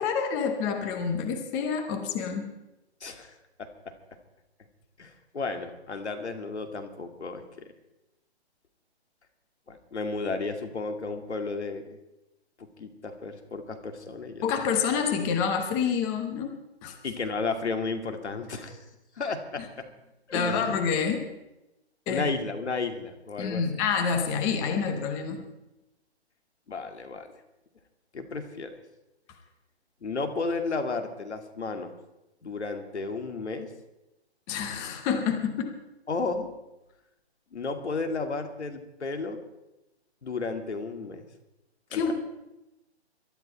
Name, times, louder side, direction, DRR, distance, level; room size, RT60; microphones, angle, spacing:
voice 1, 0.0-2.5 14.4-16.5 16.8-16.9 20.3-21.2 22.1-22.3 23.4-25.5 34.5-35.7 41.9-42.1, left 6 dB, 10° left, 5 dB, 0.6 m, -28 dB
voice 2, 3.0-3.3 3.6-3.7 5.0-7.7 9.7-12.0 12.6-14.4 17.0-18.8 19.2-19.9 20.3-20.8 22.1-23.6 26.7-27.3 28.1-28.7 30.0-31.9 32.4-33.7 36.1-36.5 37.5-39.4 40.2-41.3 41.9-42.1, left 4 dB, 80° left, 6 dB, 2.5 m, -33 dB
22.0 x 12.0 x 4.4 m, 0.94 s
hypercardioid pair, 155°, 33 cm